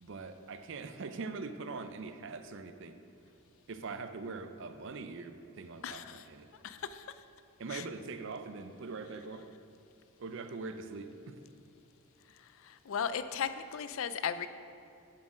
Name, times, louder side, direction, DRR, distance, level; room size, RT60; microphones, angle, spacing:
voice 1, 0.0-3.0 3.7-6.5 7.6-9.5 10.2-11.4, right 4 dB, 55° right, 9 dB, 0.5 m, -42 dB
voice 2, 5.8-6.3 6.5-7.2 7.7-7.9 12.3-14.5, left 7 dB, 60° left, 12 dB, 0.4 m, -37 dB
7.2 x 6.4 x 6.1 m, 2.7 s
head